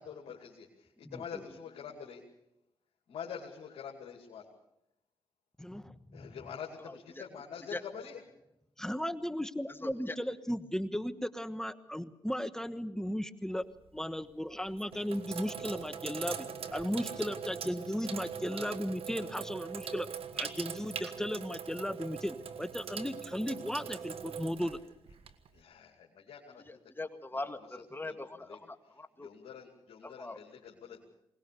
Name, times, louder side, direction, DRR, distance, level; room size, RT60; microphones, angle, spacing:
voice 1, 0.0-2.2 3.1-4.5 6.1-8.2 25.5-26.6 28.0-28.2 28.5-28.6 29.2-31.1, left 7 dB, 80° left, -1 dB, 2.6 m, -45 dB
voice 2, 1.0-1.4 5.6-6.4 8.8-13.7 13.9-20.1 20.4-24.8, equal, 5° left, 12 dB, 1.2 m, -36 dB
voice 3, 6.8-7.2 7.7-7.8 9.8-10.2 26.7-29.3 30.0-30.4, left 2 dB, 20° left, 7 dB, 2.0 m, -42 dB
Sink (filling or washing), 13.6-14.0 14.7-25.6, right 7 dB, 75° right, 1.4 m, -41 dB
21.5 x 19.5 x 6.8 m, 0.84 s
cardioid pair, 55°, 10 cm